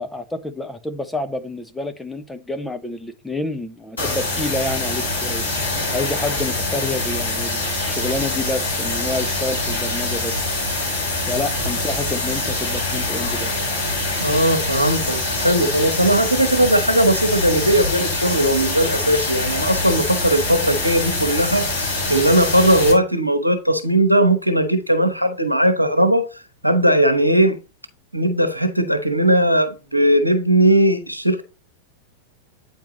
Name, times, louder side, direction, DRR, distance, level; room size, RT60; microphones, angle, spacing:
voice 1, 0.0-5.5 5.9-10.5 11.3-13.5, left 2 dB, 5° left, 0.6 m, -28 dB
sound 1, 4.0-22.9, left 2 dB, 75° left, 3.4 m, -24 dB
voice 2, 14.2-26.2 26.6-27.6 28.1-31.4, right 1 dB, 85° right, 1.0 m, -18 dB
8.8 x 4.5 x 3.0 m
figure-of-eight pair, 90°, 0 cm